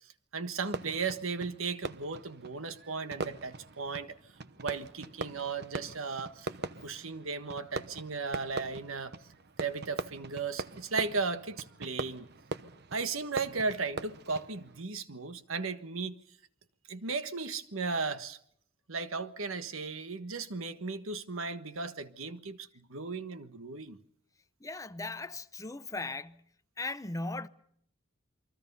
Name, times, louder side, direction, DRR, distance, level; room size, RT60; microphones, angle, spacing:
voice 1, 0.3-4.2 4.6-6.5 6.8-9.2 9.6-12.3 12.9-16.2 16.9-18.4 18.9-24.0, right 4 dB, 85° right, 1.4 m, -36 dB
Fireworks, 0.6-14.8, right 3 dB, 55° right, 1.0 m, -42 dB
voice 2, 24.6-26.4 26.8-27.5, left 2 dB, 15° left, 0.9 m, -38 dB
28.5 x 23.0 x 5.5 m
head